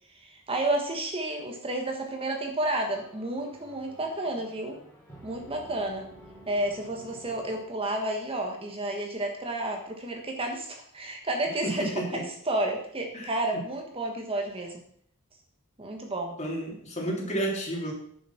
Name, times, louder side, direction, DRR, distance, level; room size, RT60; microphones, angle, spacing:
voice 1, 0.2-4.8 5.2-6.1 6.5-14.8 15.8-16.4, right 1 dB, 25° right, 2 dB, 1.4 m, -31 dB
sound 1, 2.7-8.3, right 1 dB, 10° left, 3.3 m, -52 dB
voice 2, 11.6-12.2 13.1-13.6 16.4-17.9, right 1 dB, 30° left, -1 dB, 2.9 m, -31 dB
10.0 x 7.0 x 5.8 m, 0.65 s
head